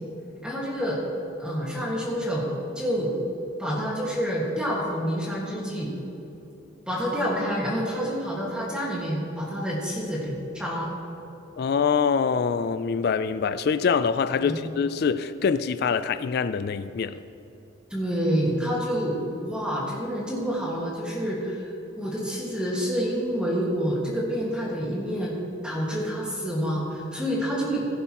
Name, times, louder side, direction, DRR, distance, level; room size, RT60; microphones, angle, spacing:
voice 1, 0.4-1.0 1.4-2.5 2.7-3.1 3.6-5.9 6.9-10.9 14.4-14.6 17.9-25.3 25.6-27.9, equal, 5° right, -5 dB, 1.7 m, -28 dB
voice 2, 11.6-17.2, left 6 dB, 50° left, 13 dB, 0.3 m, -24 dB
16.5 x 10.5 x 3.0 m, 3.0 s
head